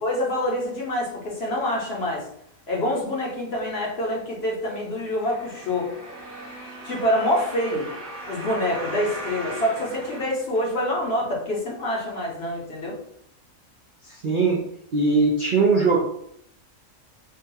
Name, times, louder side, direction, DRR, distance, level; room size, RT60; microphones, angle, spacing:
voice 1, 0.0-2.3 2.7-5.9 6.8-7.9 8.3-13.0, left 1 dB, 55° left, -2 dB, 1.0 m, -26 dB
sound 1, 5.1-11.1 11.7-11.8, right 1 dB, 15° right, 0.7 m, -37 dB
voice 2, 14.2-14.6 14.9-16.0, right 4 dB, 60° right, -2 dB, 0.5 m, -20 dB
3.8 x 2.2 x 2.7 m, 0.71 s
omnidirectional pair, 1.4 m